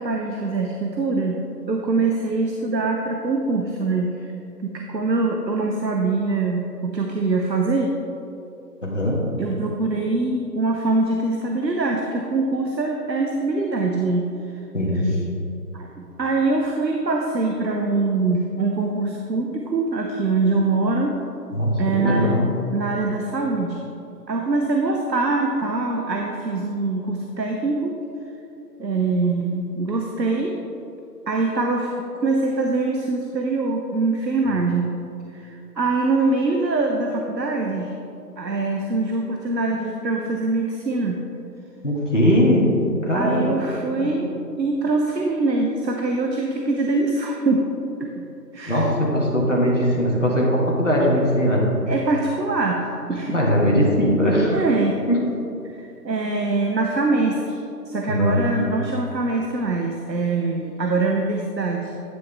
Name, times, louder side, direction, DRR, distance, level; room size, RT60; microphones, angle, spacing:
voice 1, 0.0-4.3 4.6-8.0 9.4-14.3 15.0-15.2 15.7-15.9 16.2-21.2 21.8-22.5 22.7-23.8 24.3-28.0 28.8-30.6 31.3-34.9 35.3-38.0 38.4-41.2 43.1-47.7 48.0-48.2 48.5-48.9 51.9-53.3 54.5-55.1 55.6-57.6 57.9-61.9, right 3 dB, 80° right, 1 dB, 0.9 m, -23 dB
voice 2, 8.8-9.4 14.7-15.1 21.5-22.5 41.8-42.7 43.0-43.5 44.0-44.2 48.7-51.7 53.3-54.6 55.1-55.2 58.1-58.5, equal, 45° left, -4 dB, 1.6 m, -20 dB
9.7 x 6.3 x 3.5 m, 2.8 s
figure-of-eight pair, 175°, 50 cm